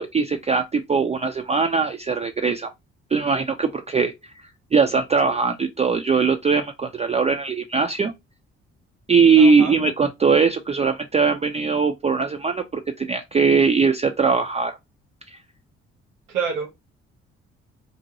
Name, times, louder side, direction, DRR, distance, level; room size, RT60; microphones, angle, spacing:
voice 1, 0.0-2.7 3.1-4.1 4.7-8.1 9.1-14.7, right 5 dB, 20° right, 0.4 m, -20 dB
voice 2, 9.4-9.8 16.3-16.7, right 6 dB, 70° right, 1.1 m, -27 dB
2.7 x 2.2 x 4.1 m
figure-of-eight pair, 40°, 33 cm